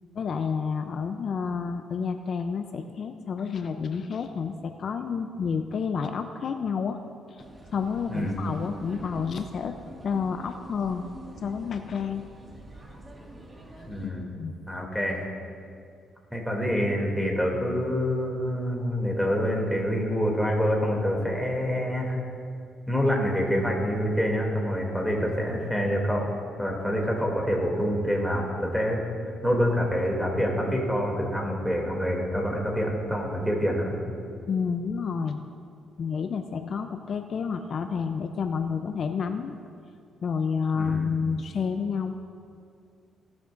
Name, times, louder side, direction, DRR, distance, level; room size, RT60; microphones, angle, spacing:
voice 1, 0.1-7.0 7.3-7.4 7.7-9.8 10.0-11.1 11.4-12.3 14.4-14.6 34.5-35.4 36.0-39.5 40.2-42.1, left 6 dB, 55° left, 7 dB, 0.5 m, -29 dB
sound 1, 7.4-14.1, right 1 dB, 20° right, 1.9 m, -45 dB
voice 2, 13.9-14.3 14.7-15.2 16.3-22.2 22.9-26.3 26.6-29.0 29.4-34.0 40.7-41.1, equal, ahead, -1 dB, 2.6 m, -26 dB
17.5 x 10.5 x 2.6 m, 2.3 s
cardioid pair, 90°, 0 cm